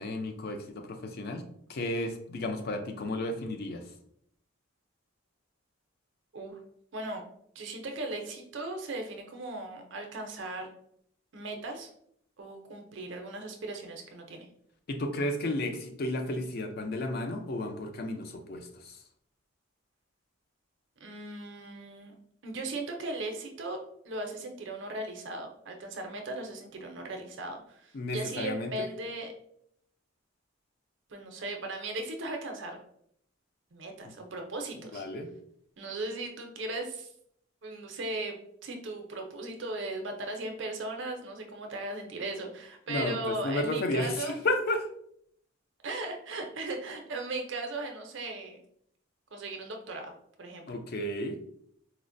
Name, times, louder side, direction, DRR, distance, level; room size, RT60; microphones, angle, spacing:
voice 1, 0.0-1.4 1.7-3.9 14.9-19.0 27.9-28.9 34.9-35.3 42.9-44.9 50.7-51.4, left 1 dB, 45° left, 6 dB, 0.4 m, -33 dB
voice 2, 6.9-7.2 7.5-10.7 11.3-11.9 12.4-14.5 21.0-22.1 22.4-29.3 31.1-32.8 33.7-35.1 35.8-37.1 37.6-44.4 45.8-48.6 49.3-50.1 50.4-50.8, right 2 dB, 55° right, 3 dB, 0.6 m, -37 dB
4.2 x 2.1 x 2.5 m, 0.68 s
head